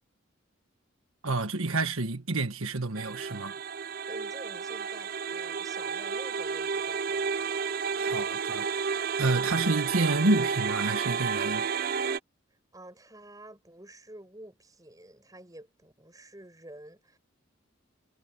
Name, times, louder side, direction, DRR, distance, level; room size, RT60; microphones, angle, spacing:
voice 1, 1.2-3.6 7.9-8.7 9.2-11.6, right 2 dB, 85° right, 1.5 m, -29 dB
sound 1, 3.0-12.2, right 6 dB, 45° right, 0.4 m, -31 dB
voice 2, 4.1-7.5 12.7-17.2, right 1 dB, 15° right, 5.2 m, -49 dB
head